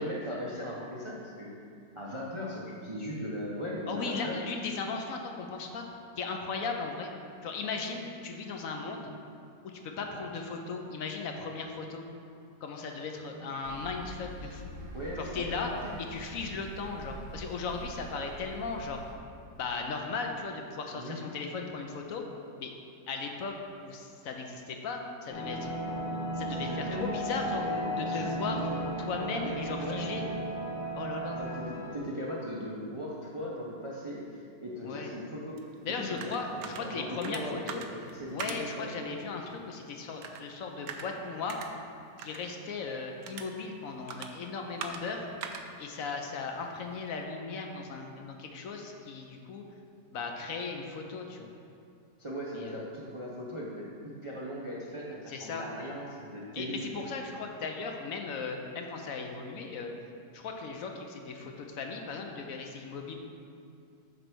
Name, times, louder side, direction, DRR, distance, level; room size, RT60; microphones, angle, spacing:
voice 1, 0.0-1.5 2.0-4.4 13.2-13.6 14.9-15.9 16.5-16.6 20.9-21.2 26.5-28.9 29.3-30.3 31.3-34.2 34.6-35.6 36.0-37.8 38.1-39.1 52.2-56.9, equal, 45° right, -5 dB, 0.4 m, -38 dB
voice 2, 3.9-5.9 6.2-7.1 7.4-9.1 9.6-12.0 12.6-14.7 15.2-15.7 16.1-19.0 19.5-22.2 22.6-22.7 23.1-23.5 23.8-25.7 26.4-27.6 28.0-28.6 29.0-30.2 30.9-31.4 34.8-35.1 35.8-37.8 38.3-41.7 42.2-45.3 45.8-49.6 50.1-51.5 52.5-52.8 55.3-55.7 56.5-59.9 60.3-63.1, left 4 dB, 65° left, 2 dB, 1.0 m, -37 dB
sound 1, 13.6-19.1, right 1 dB, 65° right, 1.0 m, -45 dB
sound 2, 25.3-32.0, right 1 dB, 90° left, 1.8 m, -35 dB
sound 3, 35.6-47.2, right 5 dB, 85° right, 1.2 m, -45 dB
9.1 x 3.3 x 6.0 m, 2.4 s
omnidirectional pair, 1.8 m